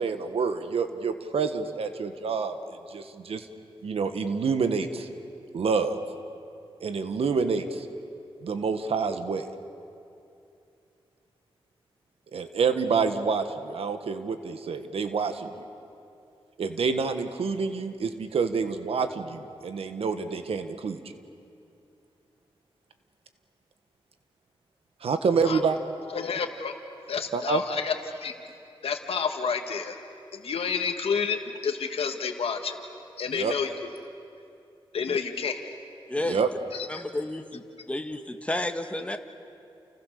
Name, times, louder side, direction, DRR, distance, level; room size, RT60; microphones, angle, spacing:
voice 1, 0.0-3.5 3.8-5.1 5.5-6.0 6.8-7.9 8.4-9.5 12.3-15.5 16.6-21.0 25.0-25.8 27.3-27.6 33.3-33.5 36.2-36.5, right 5 dB, 90° right, 8 dB, 1.6 m, -27 dB
voice 2, 26.1-26.8 27.1-28.3 28.8-30.0 30.3-32.8 33.2-33.7 34.9-35.6 36.7-37.0, left 6 dB, 90° left, 5 dB, 1.6 m, -29 dB
voice 3, 36.1-36.4 36.9-39.2, left 1 dB, 15° left, 6 dB, 1.6 m, -32 dB
29.5 x 29.5 x 6.8 m, 2.6 s
wide cardioid pair, 80°, 10 cm